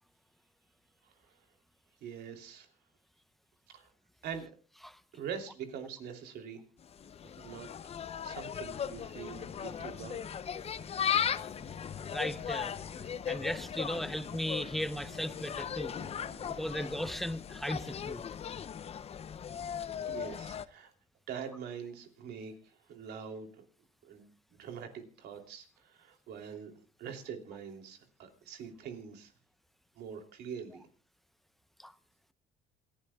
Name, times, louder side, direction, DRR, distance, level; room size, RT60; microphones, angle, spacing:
voice 1, 2.0-2.7 3.7-3.9 4.2-4.5 5.1-6.6 7.4-7.7 8.2-10.2 20.0-20.9 21.3-23.5 24.0-29.3 29.9-30.9, right 7 dB, 75° right, 3.0 m, -44 dB
Insect, 6.8-20.7, left 8 dB, 35° left, 0.6 m, -38 dB
sound 1, 8.2-17.1, right 3 dB, 35° right, 5.4 m, -57 dB
voice 2, 12.1-12.8 13.3-15.9 16.6-18.2 31.8-31.9, equal, ahead, 0.8 m, -36 dB
27.5 x 11.5 x 2.3 m
cardioid pair, 110°, 17 cm